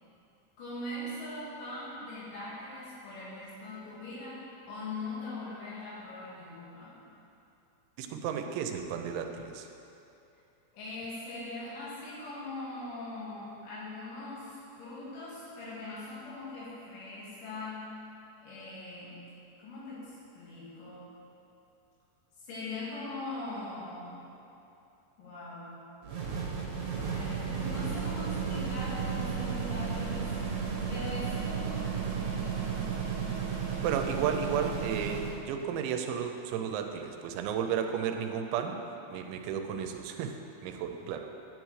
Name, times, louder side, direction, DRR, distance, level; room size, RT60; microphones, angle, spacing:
voice 1, 0.6-7.0 10.7-17.9 18.4-19.2 19.6-21.1 22.4-24.2 25.2-25.9 27.1-30.3 30.9-31.9 32.2-33.8, left 2 dB, 80° left, -8 dB, 4.3 m, -41 dB
voice 2, 8.0-9.7 33.8-38.8 39.1-40.4 40.6-41.3, right 7 dB, 85° right, 5 dB, 2.9 m, -33 dB
sound 1, 26.0-35.4, right 6 dB, 65° right, 2.5 m, -33 dB
10.5 x 8.8 x 3.2 m, 2.8 s
omnidirectional pair, 5.3 m